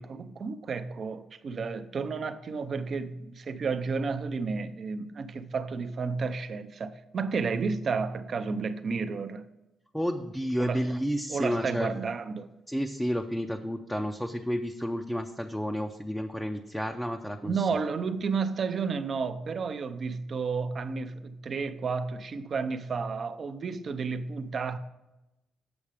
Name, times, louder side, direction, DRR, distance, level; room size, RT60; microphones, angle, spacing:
voice 1, 0.0-9.4 10.6-10.9 11.3-12.5 17.4-24.8, right 5 dB, 50° right, 0.5 m, -32 dB
voice 2, 9.9-11.9 12.7-17.7, equal, ahead, 0.5 m, -31 dB
7.0 x 6.4 x 4.9 m
cardioid pair, 90°, 0 cm